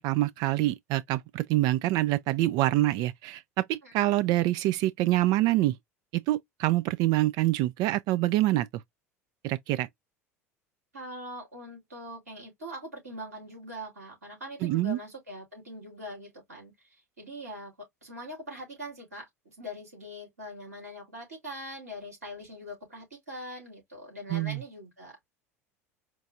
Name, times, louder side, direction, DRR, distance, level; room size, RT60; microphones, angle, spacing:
voice 1, 0.0-5.8 6.1-8.7 9.4-9.9 14.6-15.0 24.3-24.6, right 16 dB, 55° right, 0.4 m, -26 dB
voice 2, 10.9-17.7 18.0-25.2, equal, 90° right, 2.9 m, -42 dB
4.5 x 2.3 x 2.6 m
hypercardioid pair, 75°, 8 cm